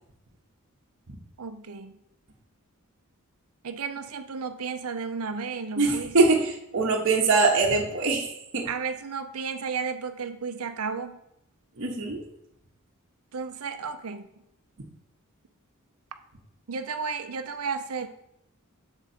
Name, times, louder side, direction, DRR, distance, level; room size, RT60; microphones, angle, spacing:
voice 1, 1.4-1.9 3.6-6.1 8.7-11.2 13.3-14.3 16.7-18.1, right 5 dB, 80° right, 8 dB, 0.6 m, -33 dB
voice 2, 5.8-8.7 11.8-12.2, right 3 dB, 60° right, -2 dB, 1.0 m, -23 dB
7.1 x 5.0 x 4.2 m, 0.80 s
head